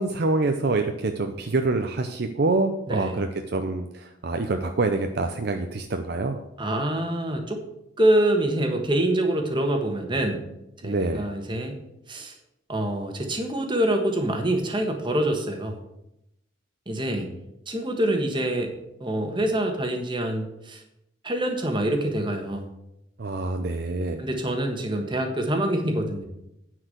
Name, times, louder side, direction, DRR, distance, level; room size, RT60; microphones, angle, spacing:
voice 1, 0.0-6.4 10.8-11.3 23.2-24.2, right 3 dB, 55° right, 6 dB, 0.6 m, -26 dB
voice 2, 2.9-3.2 6.6-7.6 8.0-10.4 10.8-11.7 12.1-12.3 12.7-15.8 16.9-17.3 17.7-18.7 19.0-20.8 21.2-22.6 24.2-26.2, right 1 dB, 25° right, 4 dB, 1.4 m, -25 dB
9.8 x 4.7 x 7.9 m, 0.85 s
head